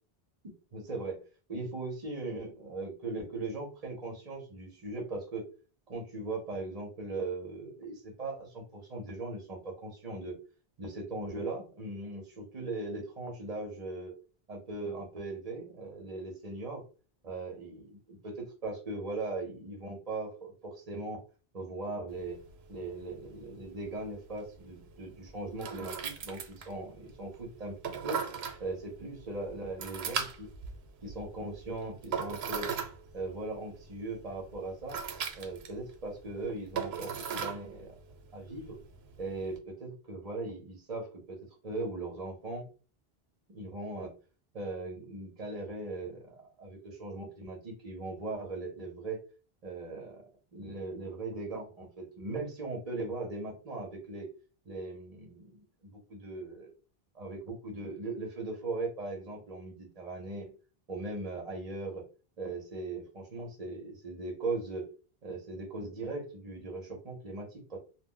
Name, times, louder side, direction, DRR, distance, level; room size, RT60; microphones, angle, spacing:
voice 1, 0.7-1.2 1.5-5.4 5.9-10.4 10.8-14.1 14.5-16.8 17.2-21.2 21.5-22.4 22.7-28.2 28.6-30.5 31.0-32.7 33.1-35.0 35.4-38.0 38.3-38.8 39.2-41.4 41.6-42.6 43.5-44.1 44.5-49.2 49.6-50.2 50.5-54.3 54.7-56.7 57.1-60.5 60.9-62.0 62.4-64.9 65.2-67.8, right 2 dB, 45° right, -1 dB, 0.7 m, -39 dB
sound 1, 22.1-39.6, right 6 dB, 85° right, 0.8 m, -40 dB
2.2 x 2.0 x 3.6 m, 0.35 s
omnidirectional pair, 1.0 m